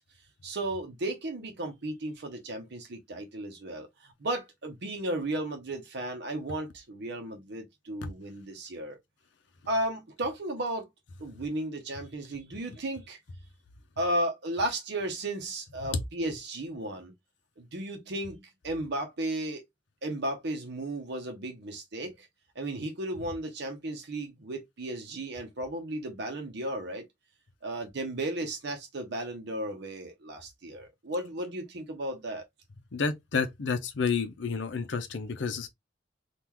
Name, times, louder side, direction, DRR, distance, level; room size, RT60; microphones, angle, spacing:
voice 1, 0.4-9.0 9.7-10.9 11.2-13.2 14.0-17.1 17.6-19.6 20.0-22.3 22.5-27.1 27.6-32.4, right 1 dB, 65° right, 0.7 m, -34 dB
voice 2, 32.9-35.7, left 5 dB, 70° left, 0.6 m, -30 dB
3.7 x 2.4 x 2.9 m
head